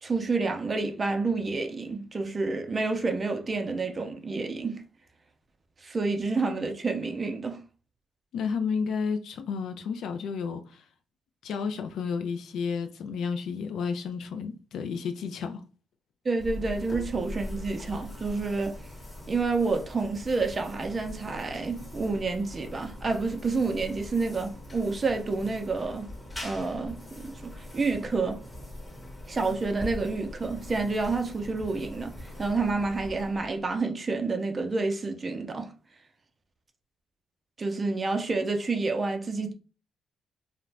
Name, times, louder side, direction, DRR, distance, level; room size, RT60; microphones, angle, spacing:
voice 1, 0.0-4.8 5.8-7.6 16.2-18.8 19.3-26.1 26.4-28.4 29.3-35.7 37.6-39.5, right 3 dB, 30° right, 0.4 m, -29 dB
voice 2, 8.3-10.8 11.4-15.6, left 5 dB, 75° left, 0.3 m, -31 dB
sound 1, 16.4-33.8, left 1 dB, 20° left, 0.9 m, -42 dB
2.4 x 2.1 x 3.2 m
cardioid pair, 90°, 0 cm